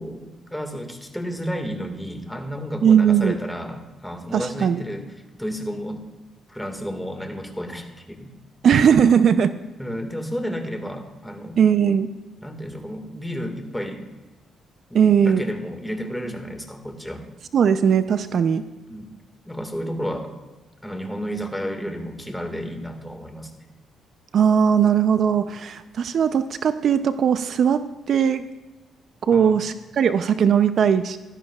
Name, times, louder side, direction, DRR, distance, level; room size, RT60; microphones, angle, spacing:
voice 1, 0.0-5.1 5.4-6.1 6.5-8.3 9.8-11.6 12.4-14.1 14.9-17.3 18.9-19.1 19.5-20.3 20.8-23.5 29.3-29.6, equal, 5° left, 4 dB, 1.7 m, -32 dB
voice 2, 2.8-3.4 4.3-4.8 8.6-9.5 11.6-12.1 14.9-15.4 17.5-18.6 24.3-28.5 29.2-31.2, right 7 dB, 60° right, 11 dB, 0.5 m, -19 dB
16.5 x 12.5 x 2.3 m, 1.2 s
cardioid pair, 90°, 0 cm